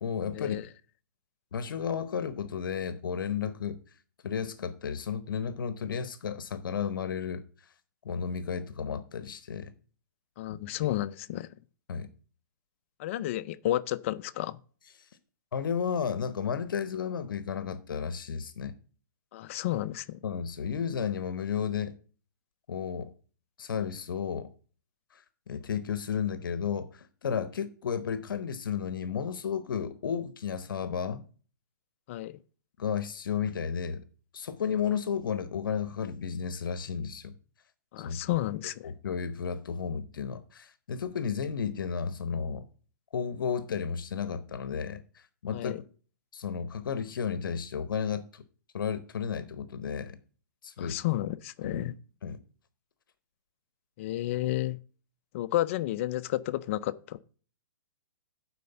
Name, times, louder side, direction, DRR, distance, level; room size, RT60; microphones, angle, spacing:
voice 1, 0.0-0.6 1.5-3.8 4.2-7.7 8.0-9.7 10.8-10.9 11.9-12.1 15.0-15.1 15.5-18.7 20.2-21.9 22.7-23.1 23.6-24.5 25.1-31.2 32.8-34.1 34.3-37.3 38.0-38.2 38.8-42.7 43.1-45.8 46.3-48.4 48.7-50.2 50.6-51.0 51.6-51.9 52.2-52.4, left 7 dB, 80° left, 0.7 m, -33 dB
voice 2, 10.4-11.5 13.0-14.6 19.3-20.2 32.1-32.4 37.9-38.9 45.5-45.8 50.8-52.0 54.0-54.8 55.3-57.2, left 14 dB, 40° left, 0.4 m, -31 dB
9.4 x 4.3 x 6.7 m
hypercardioid pair, 150°, 11 cm